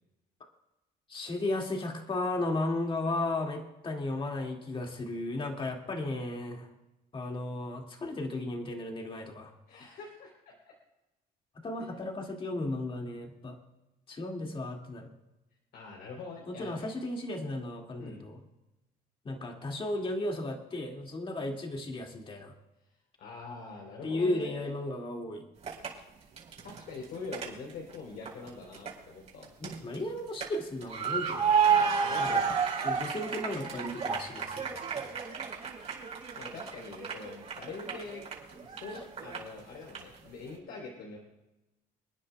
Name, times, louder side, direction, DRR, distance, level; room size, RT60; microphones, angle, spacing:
voice 1, 1.1-6.7 7.1-9.5 11.6-13.6 14.1-15.1 16.5-18.4 19.2-22.5 24.0-25.4 29.6-31.5 32.2-32.4 32.8-35.1, left 2 dB, 30° left, 1 dB, 2.3 m, -35 dB
voice 2, 9.7-10.3 11.8-11.9 15.7-16.9 18.0-18.2 23.2-24.7 26.6-29.5 31.8-32.6 36.4-38.2 38.5-41.2, left 4 dB, 75° left, -1 dB, 3.9 m, -44 dB
sound 1, 25.6-25.9 26.4-27.9 28.3-28.9 29.3-30.5 30.8-39.6 39.9-40.0, right 6 dB, 40° right, 4.5 m, -31 dB
29.5 x 9.9 x 2.3 m, 0.97 s
cardioid pair, 110°, 17 cm